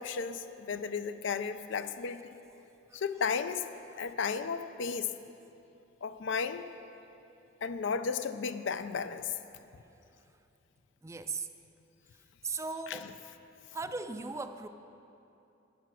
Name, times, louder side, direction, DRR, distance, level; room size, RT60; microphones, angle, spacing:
voice 1, 0.0-2.2 2.9-3.7 4.0-5.1 6.0-6.6 7.6-9.4 12.9-13.1, left 5 dB, 70° left, 11 dB, 0.4 m, -34 dB
voice 2, 11.0-11.5 12.4-13.1 13.7-14.7, right 4 dB, 15° right, 9 dB, 0.4 m, -37 dB
10.0 x 9.3 x 6.2 m, 2.8 s
head